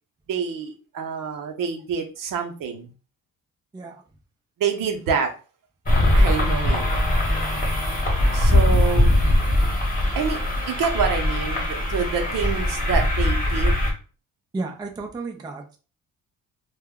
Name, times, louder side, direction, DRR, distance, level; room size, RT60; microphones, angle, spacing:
voice 1, 0.3-2.9 4.6-5.3 6.1-6.8 8.3-9.3 10.2-13.8, right 6 dB, 70° right, 0.7 m, -27 dB
voice 2, 3.7-4.0 14.5-15.8, right 3 dB, 15° right, 0.3 m, -33 dB
sound 1, 5.9-13.9, left 1 dB, 25° left, 0.9 m, -21 dB
2.1 x 2.1 x 3.5 m
cardioid pair, 120°, 34 cm